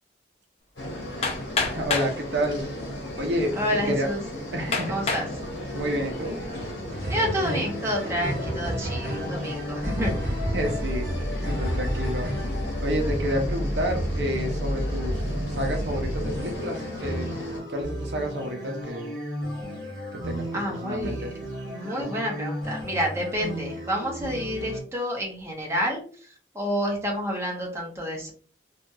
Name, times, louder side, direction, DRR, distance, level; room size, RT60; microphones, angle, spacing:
sound 1, 0.8-17.6, left 1 dB, 70° left, 1.3 m, -36 dB
Hammer, 1.2-2.2 3.1-3.2 3.8-3.9 4.7-5.3 5.9-6.3, left 4 dB, 35° left, 0.5 m, -27 dB
voice 1, 1.6-2.6 3.2-3.5 3.8-4.1 4.5-4.9 5.7-6.4 10.5-11.1 11.5-12.3 12.8-15.2 15.5-17.3 17.7-19.2 20.2-21.3, equal, 65° right, 3 dB, 0.6 m, -29 dB
voice 2, 3.6-4.2 4.9-5.3 7.1-10.1 20.5-21.2 21.6-26.3 26.5-28.3, equal, 15° right, -1 dB, 0.7 m, -29 dB
sound 2, 6.9-24.8, equal, 50° right, 1.2 m, -31 dB
2.8 x 2.7 x 2.3 m, 0.42 s
head